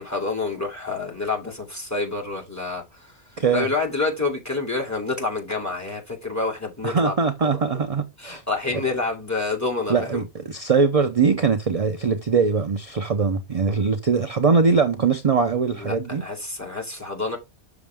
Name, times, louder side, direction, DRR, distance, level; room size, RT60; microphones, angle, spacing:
voice 1, 0.0-3.1 3.5-7.1 7.4-7.8 8.2-10.2 15.7-17.4, left 3 dB, 15° left, 2.8 m, -28 dB
voice 2, 3.4-3.7 6.8-8.4 9.9-16.2, right 5 dB, 35° right, 0.8 m, -21 dB
7.0 x 6.5 x 3.5 m
omnidirectional pair, 1.2 m